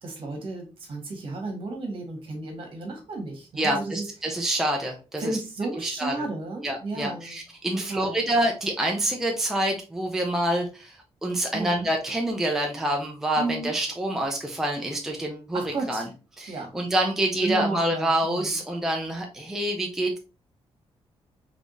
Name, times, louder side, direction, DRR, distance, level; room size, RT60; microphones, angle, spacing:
voice 1, 0.0-4.0 5.2-7.4 7.9-8.3 11.5-11.9 13.4-13.7 15.5-16.1 16.5-16.7 17.3-18.6, right 3 dB, 55° right, 2 dB, 1.4 m, -33 dB
voice 2, 3.6-5.4 5.8-6.3 6.6-11.0 11.2-16.1 16.4-20.2, right 1 dB, 5° right, 1 dB, 0.5 m, -27 dB
3.5 x 3.5 x 2.5 m, 0.33 s
wide cardioid pair, 145°, 11 cm